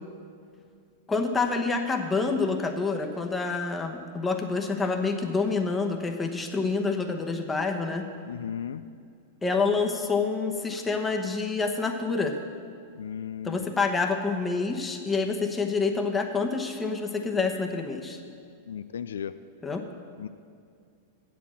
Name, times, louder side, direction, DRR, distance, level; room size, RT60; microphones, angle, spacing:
voice 1, 1.1-8.0 9.4-12.3 13.4-18.2 19.6-19.8, left 4 dB, 15° left, 4 dB, 1.0 m, -27 dB
voice 2, 8.3-8.8 13.0-13.7 18.7-19.3 20.2-20.3, left 8 dB, 85° left, 12 dB, 0.3 m, -35 dB
8.4 x 7.5 x 7.5 m, 2.3 s
hypercardioid pair, 115°, 0 cm